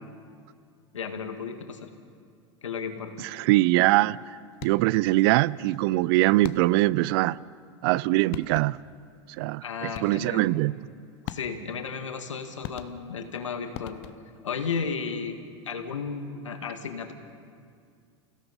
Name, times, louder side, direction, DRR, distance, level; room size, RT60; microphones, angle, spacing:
voice 1, 0.9-1.9 2.6-3.3 9.6-10.5 11.3-14.0 14.4-15.4 15.7-17.1, left 5 dB, 85° left, 6 dB, 2.0 m, -34 dB
voice 2, 3.2-4.2 4.6-7.4 7.8-8.8 9.4-10.7, right 19 dB, 55° right, 22 dB, 0.5 m, -22 dB
sound 1, 4.5-5.0 6.4-7.0 8.0-8.1 8.3-9.0 9.9-10.4 11.3-11.8 12.6-13.3 13.7-14.4, left 14 dB, 55° left, 0.9 m, -41 dB
29.5 x 17.0 x 5.4 m, 2.2 s
hypercardioid pair, 95°, 15 cm